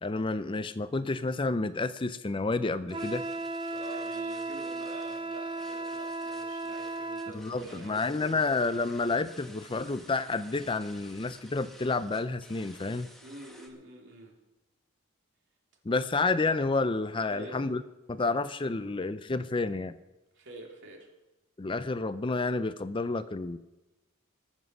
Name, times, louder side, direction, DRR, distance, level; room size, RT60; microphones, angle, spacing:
voice 1, 0.0-3.2 7.3-13.1 15.8-17.8 18.1-19.9 21.6-23.6, left 3 dB, 25° left, 13 dB, 0.5 m, -30 dB
sound 1, 2.9-13.7, equal, ahead, 1.6 m, -54 dB
Wind instrument woodwind instrument, 2.9-7.4, right 2 dB, 25° right, 0.5 m, -35 dB
voice 2, 3.7-8.4 13.2-14.4 17.3-17.7 20.3-21.1, right 2 dB, 55° right, 0 dB, 3.1 m, -46 dB
22.0 x 7.4 x 6.2 m, 1.0 s
head